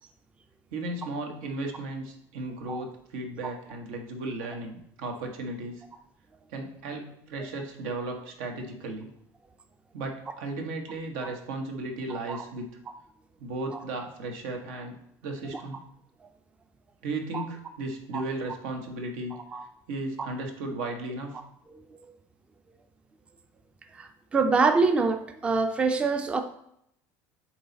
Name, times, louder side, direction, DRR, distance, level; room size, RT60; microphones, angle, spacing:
voice 1, 0.7-5.8 6.5-9.1 9.9-12.7 13.4-14.9 15.2-15.8 17.0-19.4 19.9-21.3, right 2 dB, 85° right, 3 dB, 1.2 m, -35 dB
voice 2, 12.1-12.4 17.3-17.4 18.1-18.2 19.5-19.6 24.0-26.4, right 4 dB, 15° right, 8 dB, 0.4 m, -25 dB
8.6 x 3.1 x 4.0 m, 0.73 s
cardioid pair, 135°, 7 cm